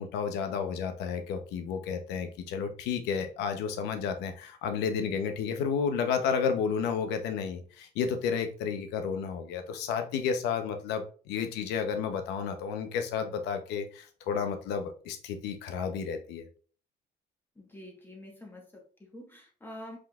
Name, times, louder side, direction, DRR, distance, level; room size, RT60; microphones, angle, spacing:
voice 1, 0.0-16.4, left 6 dB, 90° left, 7 dB, 0.7 m, -31 dB
voice 2, 17.6-20.0, left 1 dB, 10° left, 0 dB, 1.1 m, -47 dB
4.7 x 3.8 x 2.3 m, 0.41 s
cardioid pair, 110°, 17 cm